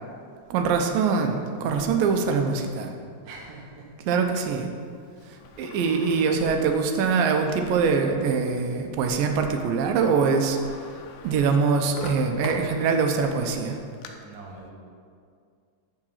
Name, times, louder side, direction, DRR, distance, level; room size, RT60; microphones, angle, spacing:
voice 1, 0.5-2.9 4.1-4.7 5.6-10.6 11.2-13.8, right 5 dB, 85° right, 4 dB, 2.5 m, -23 dB
voice 2, 3.2-3.9 4.2-4.4 14.2-14.7, right 3 dB, 45° right, -3 dB, 1.2 m, -43 dB
Sliding door, 5.2-7.8 8.4-8.5 9.8-9.9 10.0-13.2 13.7-14.1, left 4 dB, 90° left, 2.4 m, -42 dB
11.0 x 3.9 x 7.3 m, 2.2 s
omnidirectional pair, 4.0 m